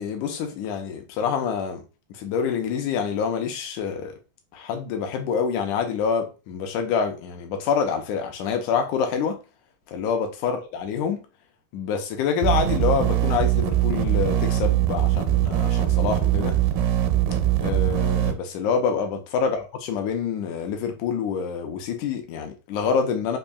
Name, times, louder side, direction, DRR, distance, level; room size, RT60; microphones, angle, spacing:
voice 1, 0.0-1.8 2.1-4.2 4.5-9.4 9.9-11.2 11.7-16.6 17.6-23.4, left 6 dB, 80° left, 2.0 m, -26 dB
sound 1, 12.4-18.3, right 12 dB, 85° right, 2.2 m, -22 dB
5.3 x 2.5 x 2.3 m
omnidirectional pair, 3.8 m